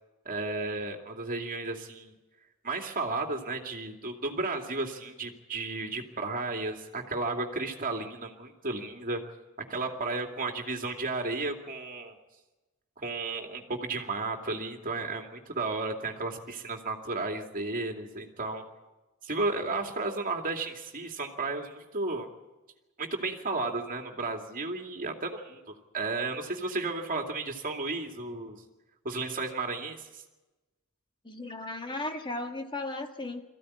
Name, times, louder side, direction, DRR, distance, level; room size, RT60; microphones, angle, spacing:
voice 1, 0.2-2.1 2.6-9.2 9.6-12.2 13.0-18.6 19.2-22.3 23.0-25.6 25.9-28.6 29.0-30.2, right 3 dB, 40° right, 3 dB, 2.5 m, -33 dB
voice 2, 31.2-33.4, left 2 dB, 20° left, 5 dB, 1.5 m, -35 dB
23.0 x 15.5 x 9.9 m, 1.1 s
head